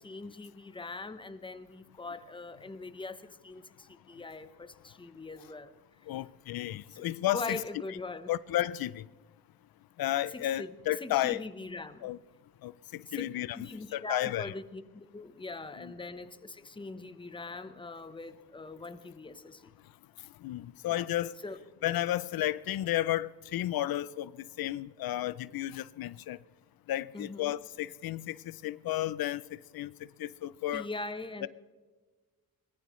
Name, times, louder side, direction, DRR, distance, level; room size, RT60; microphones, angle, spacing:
voice 1, 0.0-5.7 6.9-7.1 7.3-8.3 10.3-10.7 11.0-12.1 13.1-19.7 20.9-21.0 21.4-21.6 27.1-27.5 30.7-31.5, left 3 dB, 15° left, 0.9 m, -42 dB
voice 2, 6.1-7.6 8.3-9.0 10.0-11.4 12.0-12.2 12.6-13.6 13.9-14.5 15.8-15.9 20.4-21.3 21.8-26.4 26.9-29.4 29.7-29.9 30.2-30.9 31.4-31.5, left 14 dB, 80° left, 0.5 m, -32 dB
23.5 x 19.5 x 3.1 m
wide cardioid pair, 125°, 35 cm